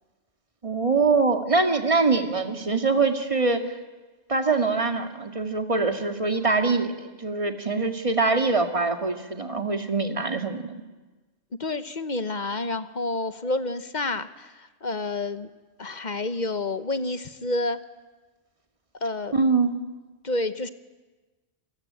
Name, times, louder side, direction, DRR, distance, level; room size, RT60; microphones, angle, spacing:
voice 1, 0.6-3.8 4.3-10.8 19.3-19.8, right 3 dB, 25° right, 6 dB, 1.9 m, -24 dB
voice 2, 11.6-15.5 15.8-17.8 19.0-19.4 20.2-20.7, left 2 dB, 40° left, 12 dB, 1.0 m, -29 dB
28.0 x 20.0 x 8.7 m, 1.2 s
omnidirectional pair, 1.3 m